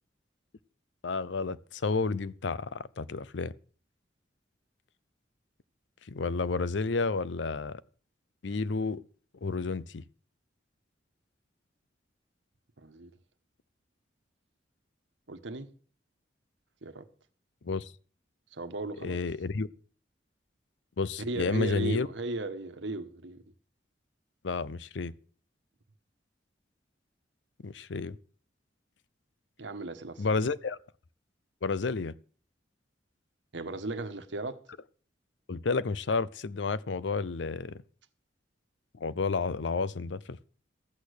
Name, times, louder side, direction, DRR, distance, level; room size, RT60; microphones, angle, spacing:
voice 1, 1.0-3.5 6.1-7.8 8.4-9.0 9.4-10.0 17.6-17.9 19.0-19.7 21.0-22.1 24.4-25.1 27.6-28.2 30.2-30.8 31.6-32.1 35.5-37.8 38.9-40.4, left 4 dB, 80° left, 0.6 m, -31 dB
voice 2, 12.8-13.1 15.3-15.7 16.8-17.1 18.5-19.2 21.2-23.4 29.6-30.4 33.5-34.6, right 2 dB, 85° right, 1.2 m, -36 dB
13.0 x 8.4 x 6.5 m
head